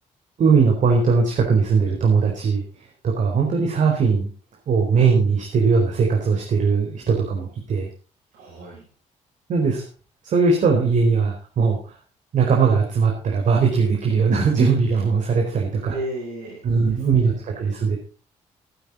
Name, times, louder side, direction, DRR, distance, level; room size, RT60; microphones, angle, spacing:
voice 1, 0.4-2.6 3.0-4.3 4.7-7.9 9.5-9.8 10.2-11.9 12.3-16.0 16.6-18.0, right 5 dB, 60° right, 0 dB, 4.4 m, -19 dB
voice 2, 8.3-8.9 15.9-17.4, right 1 dB, 80° right, -6 dB, 8.0 m, -34 dB
15.0 x 11.5 x 4.2 m, 0.37 s
cardioid pair, 80°, 14 cm